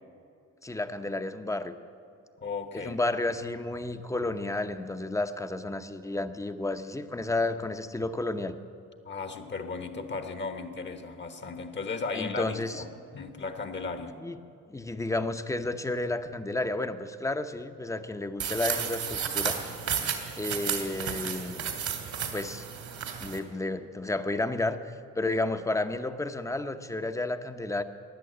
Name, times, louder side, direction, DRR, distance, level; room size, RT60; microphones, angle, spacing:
voice 1, 0.6-1.8 2.7-8.6 12.1-12.8 14.2-14.4 14.7-19.6 20.4-21.7 22.3-22.7 23.2-24.8 25.2-27.8, left 2 dB, 10° left, 9 dB, 0.8 m, -31 dB
voice 2, 2.4-3.0 9.0-14.2, left 4 dB, 40° left, 8 dB, 1.2 m, -36 dB
sound 1, 18.4-23.4, right 7 dB, 70° right, 2.2 m, -32 dB
15.5 x 10.5 x 8.0 m, 2.6 s
cardioid pair, 90°, 30 cm